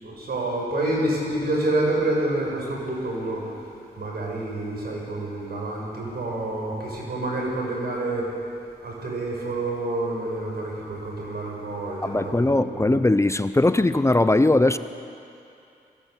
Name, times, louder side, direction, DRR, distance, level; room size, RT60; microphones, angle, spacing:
voice 1, 0.0-3.4 4.0-8.3 8.8-13.0, right 2 dB, 75° right, -2 dB, 6.3 m, -28 dB
voice 2, 12.0-14.8, left 2 dB, 15° left, 11 dB, 0.7 m, -20 dB
22.0 x 17.0 x 8.3 m, 2.7 s
cardioid pair, 70°, 16 cm